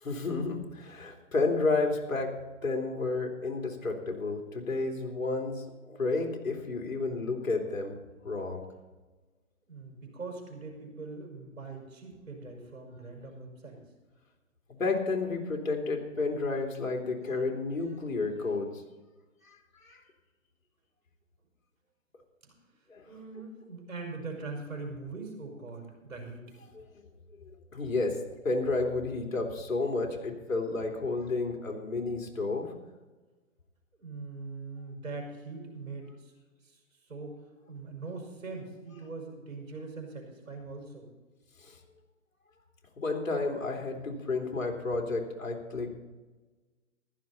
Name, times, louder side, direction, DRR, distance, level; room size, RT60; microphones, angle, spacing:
voice 1, 0.0-2.3 2.6-7.9 8.2-8.6 14.7-18.8 19.8-20.0 22.9-23.1 26.7-26.8 27.4-32.7 41.6-41.8 43.0-46.0, left 3 dB, 80° left, 2 dB, 3.3 m, -31 dB
voice 2, 9.7-13.8 22.4-22.5 23.1-26.5 33.9-36.3 36.6-36.8 37.1-37.4 37.7-41.1, right 3 dB, 85° right, 2 dB, 5.5 m, -42 dB
15.0 x 12.5 x 4.2 m, 1.2 s
hypercardioid pair, 145°, 40 cm